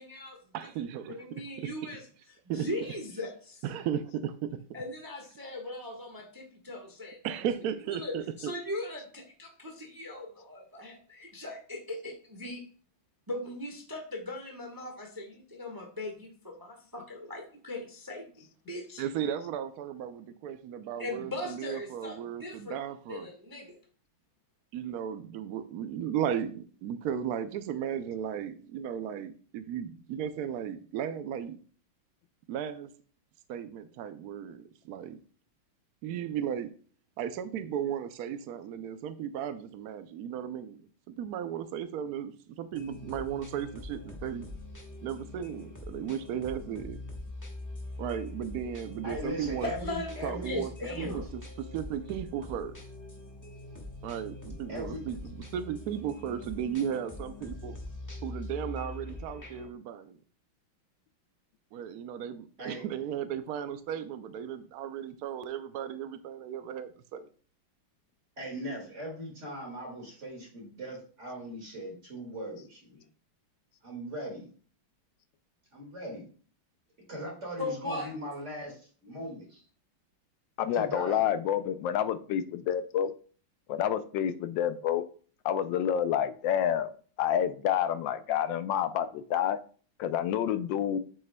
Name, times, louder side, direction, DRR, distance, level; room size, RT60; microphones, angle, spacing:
voice 1, 0.0-0.4 1.1-2.0 2.5-3.6 4.7-7.2 7.9-12.6 13.3-19.0 21.0-22.8 23.1-23.8 49.6-51.2 77.6-78.1, left 1 dB, 15° right, 2 dB, 0.9 m, -39 dB
voice 2, 0.5-1.7 2.5-2.7 3.6-4.6 7.2-8.5 19.0-23.3 24.7-31.6 32.5-32.9 33.5-35.2 36.0-36.7 37.2-44.5 45.0-47.0 48.0-49.7 50.2-50.7 51.0-51.4 51.7-52.7 54.0-57.8 58.2-60.2 61.7-67.3, right 9 dB, 85° right, 10 dB, 0.8 m, -35 dB
sound 1, 42.7-59.7, left 2 dB, 10° left, 1.0 m, -43 dB
voice 3, 49.0-51.2 54.7-55.0 62.6-62.8 68.4-73.1 73.8-74.5 75.7-76.3 77.1-79.6 80.7-81.2, equal, 35° right, -1 dB, 2.3 m, -39 dB
voice 4, 80.6-83.1 83.7-85.0 85.4-86.9 87.2-89.6 90.0-91.0, left 9 dB, 75° left, 11 dB, 1.2 m, -28 dB
7.8 x 7.4 x 2.2 m, 0.42 s
omnidirectional pair, 2.2 m